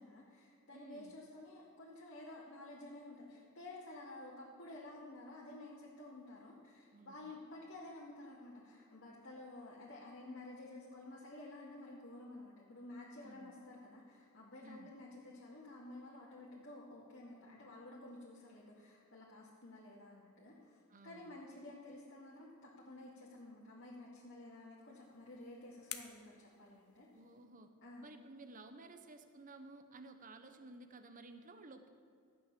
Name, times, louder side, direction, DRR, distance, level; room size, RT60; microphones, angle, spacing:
voice 1, 0.0-27.1 27.8-28.1, left 2 dB, 55° left, -6 dB, 2.4 m, -52 dB
voice 2, 0.7-1.2 6.9-7.3 13.2-13.6 14.6-14.9 20.9-21.4 27.1-27.7 28.0-31.9, right 2 dB, 35° right, 8 dB, 1.0 m, -55 dB
sound 1, 24.8-27.5, left 11 dB, 80° left, 1.0 m, -53 dB
14.0 x 9.2 x 6.9 m, 2.4 s
head